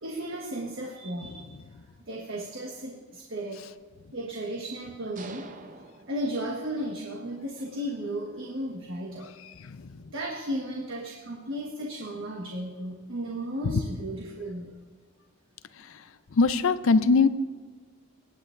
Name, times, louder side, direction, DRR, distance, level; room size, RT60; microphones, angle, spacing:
voice 1, 0.0-1.5 2.1-3.6 4.1-5.5 6.1-9.3 10.1-14.7, right 1 dB, 60° right, -1 dB, 1.4 m, -34 dB
sound 1, 5.2-7.0, right 3 dB, 40° right, 0.7 m, -46 dB
voice 2, 16.3-17.3, left 4 dB, 70° left, 13 dB, 0.5 m, -21 dB
19.5 x 9.2 x 2.6 m, 1.5 s
head